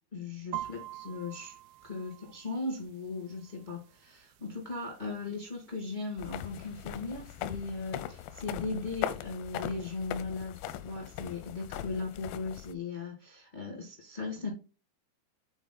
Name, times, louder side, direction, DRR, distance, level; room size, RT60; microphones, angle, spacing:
voice 1, 0.1-1.5 1.8-14.5, left 3 dB, 45° left, 1 dB, 0.5 m, -38 dB
sound 1, 0.5-8.3, right 15 dB, 85° right, 2.2 m, -48 dB
sound 2, 6.2-12.7, left 11 dB, 85° left, 2.1 m, -39 dB
9.1 x 4.4 x 3.9 m, 0.33 s
omnidirectional pair, 4.9 m